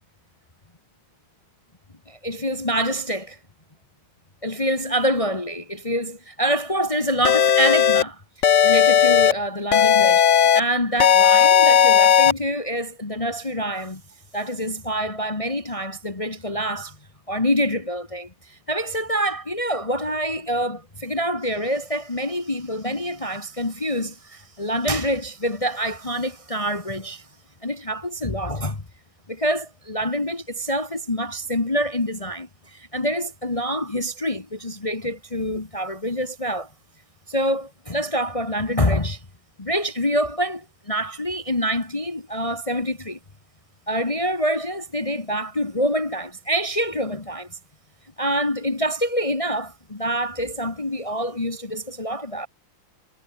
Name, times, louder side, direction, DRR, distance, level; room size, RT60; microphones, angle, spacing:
voice 1, 2.1-3.4 4.4-8.2 8.5-14.0 14.3-17.0 17.3-27.3 27.6-28.8 29.3-36.7 37.3-39.2 39.6-43.2 43.9-47.6 48.2-52.5, equal, 20° left, 1.3 m, -26 dB
sound 1, 7.2-8.0 8.4-9.3 9.7-10.6 11.0-12.3, left 8 dB, 50° left, 1.0 m, -15 dB
omnidirectional pair, 2.3 m